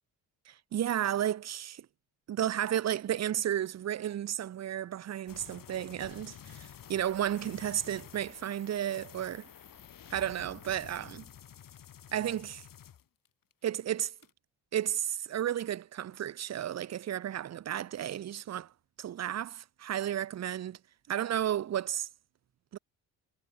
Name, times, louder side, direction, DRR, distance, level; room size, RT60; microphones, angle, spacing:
voice 1, 0.5-1.9 2.3-9.5 10.1-11.3 12.1-12.6 13.6-14.1 14.7-18.7 19.0-20.8 21.1-22.1 22.7-22.8, right 11 dB, 40° right, 0.7 m, -33 dB
sound 1, 5.3-13.5 13.8-14.3, left 9 dB, 55° left, 2.1 m, -51 dB
cardioid pair, 80°, 40 cm